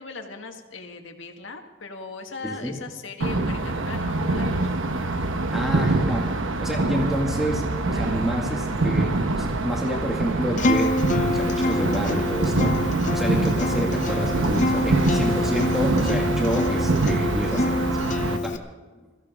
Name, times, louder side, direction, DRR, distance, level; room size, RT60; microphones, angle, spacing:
voice 1, 0.0-4.7, left 4 dB, 80° left, 4 dB, 1.7 m, -38 dB
voice 2, 2.4-2.7 5.5-6.3 6.6-10.9 11.3-12.7 13.1-17.8 18.3-18.6, equal, ahead, -2 dB, 2.2 m, -28 dB
sound 1, 3.2-18.4, right 2 dB, 85° right, 1.0 m, -25 dB
Acoustic guitar, 10.6-18.6, left 1 dB, 40° left, 0.7 m, -26 dB
21.5 x 15.0 x 3.7 m, 1.3 s
head